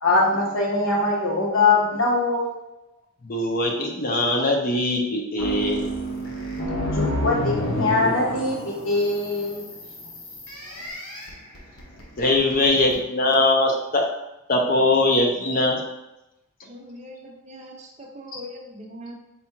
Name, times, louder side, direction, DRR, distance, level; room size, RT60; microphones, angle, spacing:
voice 1, 0.0-2.6 6.9-9.7, left 3 dB, 60° left, -3 dB, 1.1 m, -22 dB
voice 2, 3.2-5.8 12.2-14.0 14.5-15.8, left 2 dB, 40° left, 1 dB, 0.7 m, -21 dB
sound 1, 5.4-13.0, equal, 85° left, 1.0 m, -30 dB
voice 3, 16.6-19.1, equal, 30° right, 1 dB, 0.5 m, -41 dB
4.2 x 2.4 x 4.4 m, 0.92 s
head